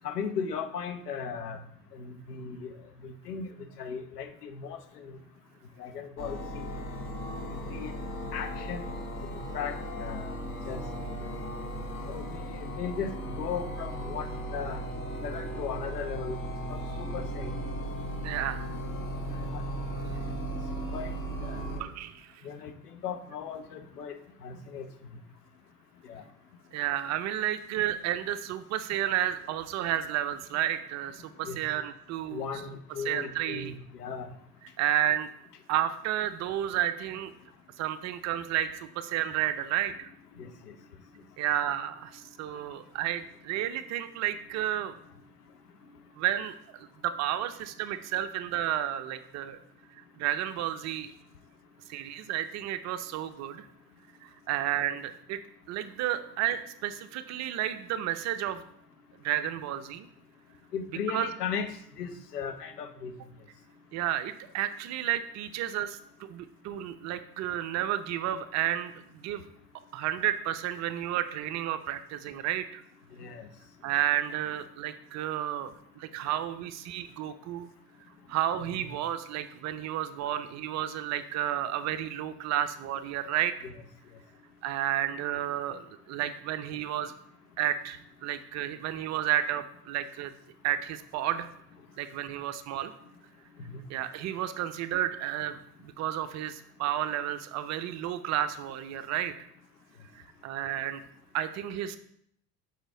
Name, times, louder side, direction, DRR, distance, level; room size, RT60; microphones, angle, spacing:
voice 1, 0.0-1.6 1.9-2.7 3.0-3.5 3.8-5.2 5.8-6.7 7.4-7.9 8.3-8.8 9.2-10.4 10.7-10.8 11.2-11.3 12.0-14.8 15.2-16.4 16.7-17.6 19.3-19.6 20.9-21.9 22.4-24.1 24.4-24.9 26.0-26.2 31.4-31.6 32.3-34.3 40.4-40.5 60.7-61.7 62.0-63.1 73.1-73.5 78.6-78.9 83.6-83.8 93.7-93.8, left 6 dB, 75° left, 7 dB, 1.1 m, -37 dB
sound 1, 6.2-21.8, right 1 dB, 25° left, 1.4 m, -36 dB
voice 2, 18.2-18.6 21.8-22.4 26.7-32.4 33.1-33.7 34.8-35.3 35.7-37.3 37.8-40.1 41.4-44.9 46.2-49.6 50.2-51.1 51.9-53.7 54.2-55.4 55.7-58.6 59.2-60.1 61.1-61.3 63.9-69.4 69.9-72.8 73.8-77.7 78.3-83.5 84.6-87.1 87.6-90.3 90.6-91.5 92.0-92.9 93.9-99.5 100.1-101.0 101.3-102.0, right 11 dB, 35° right, 11 dB, 0.6 m, -31 dB
7.9 x 5.0 x 3.8 m, 0.71 s
figure-of-eight pair, 75°, 48 cm